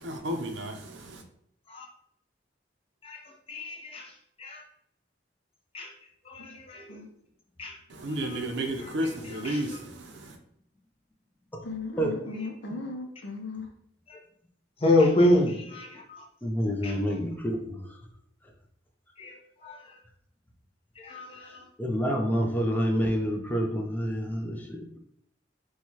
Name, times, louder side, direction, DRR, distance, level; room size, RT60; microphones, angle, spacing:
voice 1, 0.0-1.2 7.9-10.4, right 1 dB, 75° right, 0.6 m, -32 dB
voice 2, 3.5-4.6 5.7-6.0 6.2-7.0 7.6-7.8 8.1-8.4 8.8-9.8 12.3-12.5 14.1-14.2 14.8-16.3 16.8-17.2 19.2-20.0 20.9-21.7, left 1 dB, 30° left, 0.8 m, -28 dB
voice 3, 11.6-13.7, left 3 dB, 70° left, 0.7 m, -37 dB
voice 4, 16.4-18.0 21.8-25.0, equal, 10° left, 0.4 m, -28 dB
4.5 x 2.3 x 2.8 m
head